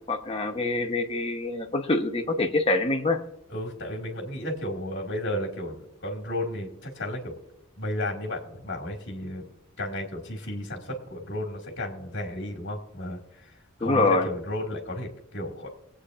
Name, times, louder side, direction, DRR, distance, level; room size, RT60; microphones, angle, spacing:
voice 1, 0.1-3.2 13.8-14.3, left 2 dB, 30° left, 4 dB, 1.0 m, -25 dB
voice 2, 3.5-5.8 6.0-7.3 7.8-9.5 9.8-13.5 13.8-15.7, left 1 dB, 60° left, 1 dB, 2.2 m, -33 dB
24.0 x 8.4 x 2.5 m, 0.80 s
head